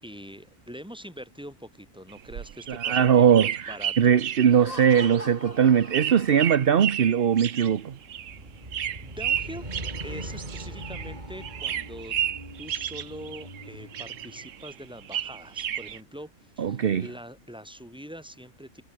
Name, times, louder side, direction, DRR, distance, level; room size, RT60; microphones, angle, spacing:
voice 1, 0.0-4.2 9.0-9.7 10.0-12.2 12.6-18.8, equal, 5° right, 6.2 m, -43 dB
sound 1, 2.1-11.2 11.4-13.7 13.9-16.0, right 10 dB, 85° right, 1.3 m, -33 dB
voice 2, 2.7-8.0 16.6-17.1, right 8 dB, 50° right, 1.0 m, -21 dB
Laughter, 4.5-6.8, left 1 dB, 30° left, 4.2 m, -43 dB
sound 2, 8.1-14.5, right 1 dB, 35° right, 8.0 m, -41 dB
omnidirectional pair, 1.3 m